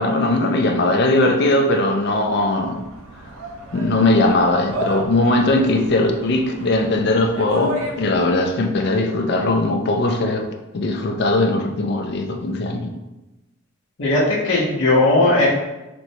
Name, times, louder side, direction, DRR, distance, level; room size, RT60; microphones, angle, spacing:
voice 1, 0.0-2.8 3.7-10.5 10.7-12.9, left 2 dB, 50° left, 4 dB, 0.4 m, -19 dB
sound 1, 2.1-8.4, right 1 dB, 80° right, 0.5 m, -34 dB
voice 2, 14.0-15.5, left 2 dB, 70° left, -10 dB, 0.9 m, -17 dB
4.2 x 2.1 x 2.7 m, 1.0 s
head